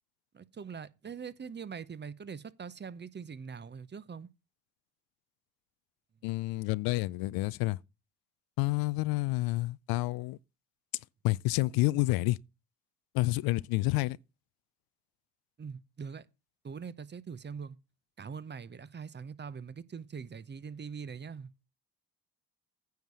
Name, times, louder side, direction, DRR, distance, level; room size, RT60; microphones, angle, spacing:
voice 1, 0.3-4.3 15.6-16.3 16.6-17.8 18.2-21.5, right 6 dB, 30° right, 0.8 m, -43 dB
voice 2, 6.2-7.8 8.6-10.4 11.2-12.4 13.1-14.2, left 20 dB, 80° left, 0.5 m, -29 dB
9.3 x 4.7 x 6.8 m
supercardioid pair, 65°, 36 cm